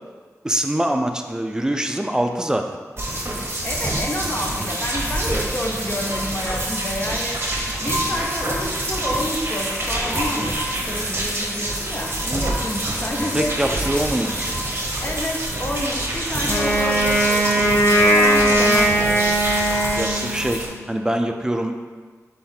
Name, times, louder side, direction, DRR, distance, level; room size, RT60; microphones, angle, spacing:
voice 1, 0.4-2.6 5.3-5.5 13.3-14.5 20.0-21.8, right 1 dB, 10° right, 4 dB, 0.4 m, -24 dB
sound 1, 3.0-20.7, right 1 dB, 40° right, 0.8 m, -26 dB
voice 2, 3.6-7.4 7.8-13.8 15.0-19.3, left 1 dB, 35° left, 0 dB, 0.7 m, -29 dB
Wind instrument woodwind instrument, 16.5-20.7, right 1 dB, 65° left, 0.6 m, -19 dB
3.6 x 3.3 x 4.4 m, 1.5 s
cardioid pair, 50°, 6 cm